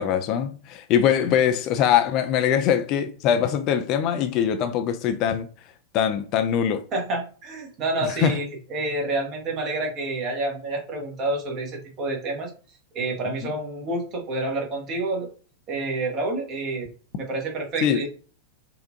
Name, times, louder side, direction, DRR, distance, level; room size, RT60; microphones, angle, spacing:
voice 1, 0.0-5.5 5.9-6.8 8.0-8.4 13.4-13.5 17.8-18.0, left 9 dB, 40° left, 0.3 m, -22 dB
voice 2, 6.9-12.5 12.9-15.3 15.7-18.1, right 2 dB, 35° right, 1.1 m, -28 dB
4.1 x 2.5 x 2.6 m
figure-of-eight pair, 90°, 0 cm